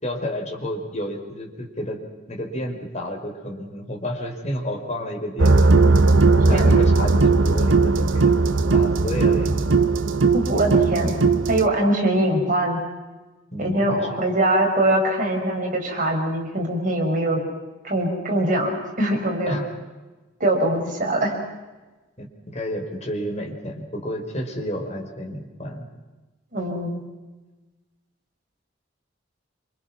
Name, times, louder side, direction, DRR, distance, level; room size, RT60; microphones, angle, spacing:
voice 1, 0.0-2.0 2.3-5.8 6.5-8.3 8.7-9.7 13.5-14.2 19.5-19.7 22.2-25.9, equal, 35° left, 1 dB, 5.2 m, -31 dB
sound 1, 5.4-11.7, right 3 dB, 80° right, 1.2 m, -17 dB
voice 2, 6.5-6.8 10.3-11.2 11.5-12.8 13.6-17.4 17.8-19.6 20.4-21.3 26.5-27.0, right 1 dB, 45° right, 1 dB, 5.9 m, -22 dB
28.0 x 26.5 x 6.1 m, 1.2 s
head